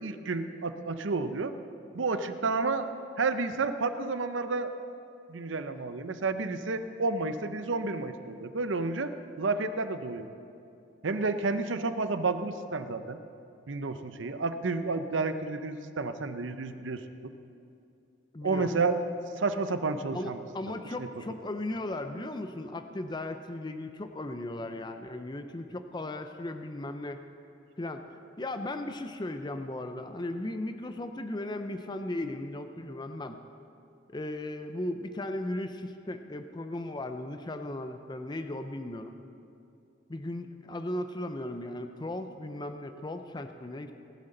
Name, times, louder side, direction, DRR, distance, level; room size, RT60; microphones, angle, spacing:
voice 1, 0.0-1.5 1.9-2.9 3.2-4.7 5.3-9.1 9.4-10.3 11.0-13.2 13.7-17.0 18.4-19.0 19.4-20.4 20.7-21.1, right 3 dB, 80° right, 10 dB, 0.7 m, -30 dB
voice 2, 18.3-18.8 20.1-27.2 27.8-28.0 28.4-33.4 34.1-39.1 40.1-43.9, left 1 dB, 25° left, 8 dB, 0.5 m, -36 dB
19.0 x 11.5 x 3.9 m, 2.5 s
head